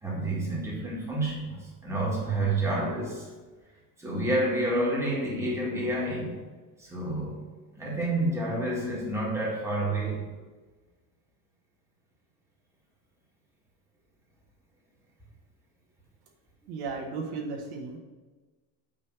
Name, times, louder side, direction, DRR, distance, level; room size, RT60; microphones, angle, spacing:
voice 1, 0.0-3.3 4.0-6.4 6.8-7.4 7.7-10.2, right 1 dB, 5° right, -5 dB, 1.7 m, -29 dB
voice 2, 16.7-18.0, right 4 dB, 65° right, 1 dB, 1.4 m, -35 dB
9.5 x 3.5 x 5.9 m, 1.3 s
cardioid pair, 170°, 42 cm